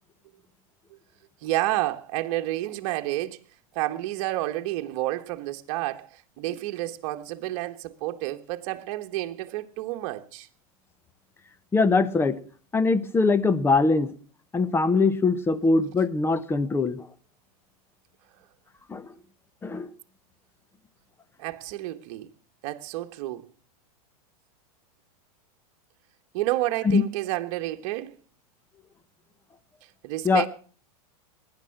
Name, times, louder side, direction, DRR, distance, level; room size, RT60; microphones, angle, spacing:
voice 1, 1.4-3.4 3.7-10.5 21.4-22.3 22.6-23.4 26.3-28.1 30.0-30.5, right 16 dB, 55° right, 1.4 m, -30 dB
voice 2, 11.7-12.4 12.7-14.1 14.5-17.1 18.9-19.1 19.6-19.9 26.8-27.0 30.2-30.4, left 3 dB, 10° left, 1.0 m, -22 dB
18.5 x 10.5 x 5.9 m
supercardioid pair, 135°, 19 cm